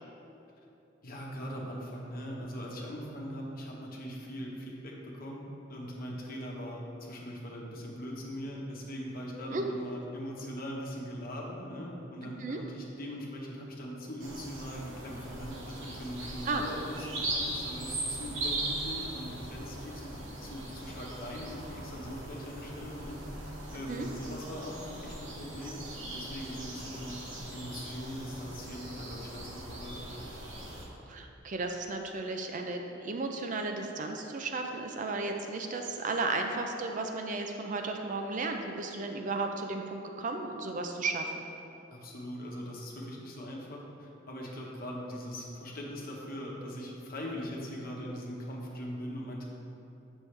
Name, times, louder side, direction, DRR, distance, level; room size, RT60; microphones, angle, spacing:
voice 1, 1.0-27.2 27.5-30.0 41.9-49.5, equal, 50° left, -2 dB, 1.2 m, -41 dB
sound 1, 14.2-30.8, right 2 dB, 85° right, 1.4 m, -40 dB
voice 2, 31.1-41.4, right 3 dB, 40° right, 4 dB, 0.4 m, -34 dB
8.4 x 6.2 x 3.3 m, 2.9 s
head